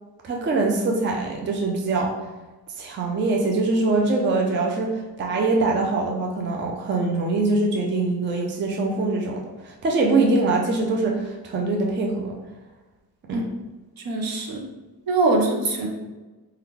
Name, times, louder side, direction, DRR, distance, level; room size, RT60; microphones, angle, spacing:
voice 1, 0.2-2.1 2.8-12.4 13.3-13.4, right 3 dB, 30° right, 0 dB, 0.4 m, -23 dB
voice 2, 14.0-14.6 15.1-15.9, right 2 dB, 70° right, 1 dB, 0.7 m, -22 dB
2.9 x 2.3 x 3.5 m, 1.2 s
wide cardioid pair, 150°, 37 cm